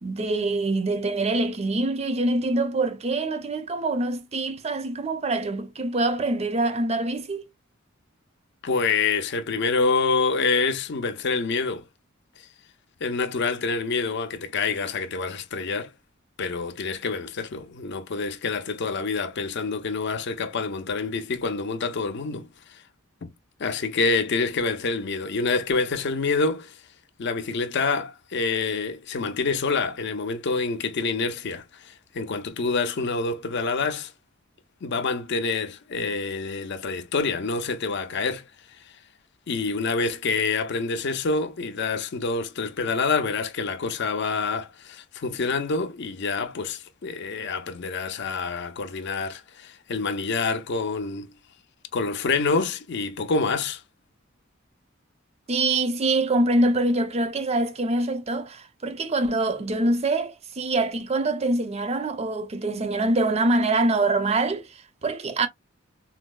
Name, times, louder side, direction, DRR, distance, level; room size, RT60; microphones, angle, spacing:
voice 1, 0.0-7.5 55.5-64.7 65.0-65.5, right 2 dB, 30° right, 0.5 m, -24 dB
voice 2, 8.6-11.9 13.0-15.9 16.4-22.8 23.2-23.3 23.6-26.7 27.2-34.1 34.8-38.4 39.5-51.3 51.9-53.8, left 4 dB, 60° left, 0.5 m, -27 dB
4.0 x 2.1 x 2.2 m
head